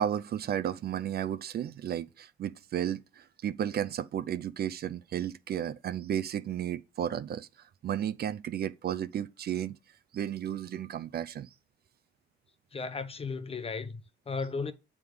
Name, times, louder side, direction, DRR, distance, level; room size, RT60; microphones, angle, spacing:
voice 1, 0.0-7.5 7.8-9.8 10.1-11.5, right 10 dB, 55° right, 0.5 m, -33 dB
voice 2, 12.7-14.7, left 4 dB, 30° left, 0.8 m, -35 dB
7.6 x 3.6 x 5.0 m
cardioid pair, 90°, 20 cm